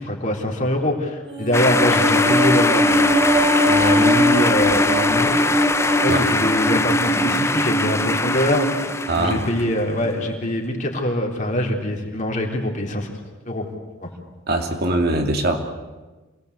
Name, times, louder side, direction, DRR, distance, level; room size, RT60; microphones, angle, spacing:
voice 1, 0.0-3.1 3.6-5.4 6.0-13.1 13.5-13.6 14.0-14.1, left 1 dB, 40° left, 1 dB, 3.7 m, -23 dB
sound 1, 1.3-9.7 10.0-10.2, equal, 25° right, 2.9 m, -21 dB
sound 2, 1.5-9.8, left 3 dB, 15° left, 0.8 m, -22 dB
voice 2, 9.1-9.4 14.5-15.6, right 2 dB, 50° right, 4 dB, 2.5 m, -21 dB
27.0 x 19.0 x 8.2 m, 1.2 s
head